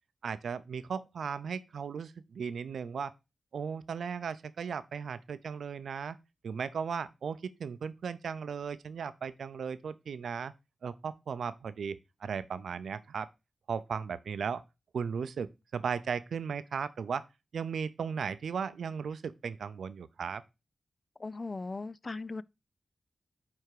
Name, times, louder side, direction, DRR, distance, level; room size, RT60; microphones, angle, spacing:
voice 1, 0.2-3.1 3.5-6.2 6.4-10.5 10.8-13.3 13.7-14.6 14.9-17.2 17.5-20.4, right 6 dB, 85° right, 0.5 m, -36 dB
voice 2, 21.2-22.4, left 3 dB, 40° left, 0.3 m, -38 dB
9.0 x 3.5 x 4.8 m
cardioid pair, 60°, 0 cm